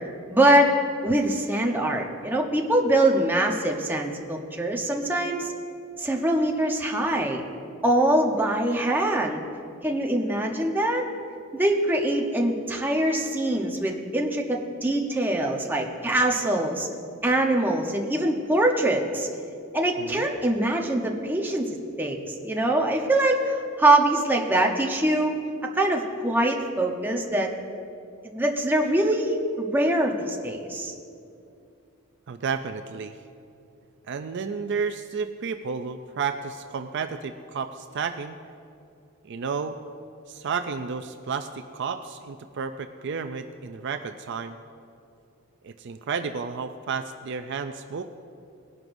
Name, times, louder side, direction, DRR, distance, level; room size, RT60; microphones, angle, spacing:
voice 1, 0.3-0.7 1.0-5.5 6.0-7.4 7.8-9.5 9.8-11.0 11.6-16.9 17.2-19.3 19.7-22.2 22.4-25.3 25.7-27.5 28.2-30.9, right 1 dB, 10° right, 0 dB, 0.9 m, -23 dB
voice 2, 20.0-20.3 32.3-33.2 34.1-38.4 39.2-39.8 40.3-44.6 45.6-48.0, right 5 dB, 55° right, 8 dB, 0.4 m, -32 dB
19.5 x 11.0 x 2.6 m, 2.5 s
head